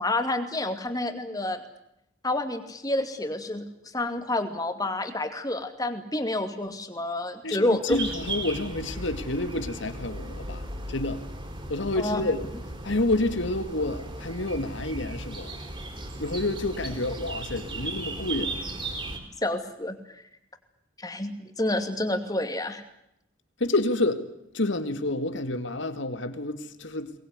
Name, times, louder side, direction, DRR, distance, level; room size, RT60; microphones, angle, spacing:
voice 1, 0.0-1.6 2.2-3.6 3.9-8.0 11.9-12.2 19.4-20.2 21.0-22.8, left 1 dB, 20° left, 2.6 m, -29 dB
voice 2, 7.4-10.6 10.9-11.2 11.7-12.5 12.8-15.5 16.2-18.6 23.6-24.2 24.5-27.1, left 2 dB, 65° left, 2.2 m, -29 dB
sound 1, 7.9-19.2, right 2 dB, 25° right, 4.7 m, -36 dB
23.5 x 20.5 x 9.7 m
head